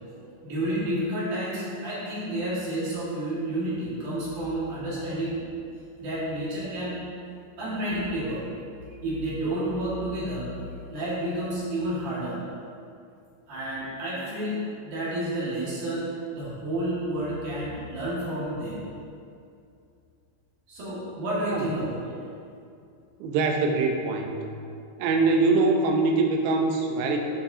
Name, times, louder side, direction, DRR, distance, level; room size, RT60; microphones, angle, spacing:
voice 1, 0.2-5.4 6.0-6.9 7.6-8.4 8.9-10.5 10.9-12.4 13.5-18.8 20.7-21.9, right 1 dB, 60° right, -8 dB, 3.0 m, -30 dB
voice 2, 23.2-24.4 25.0-27.2, right 3 dB, 80° right, 3 dB, 2.2 m, -23 dB
9.9 x 5.3 x 2.7 m, 2.5 s
omnidirectional pair, 4.7 m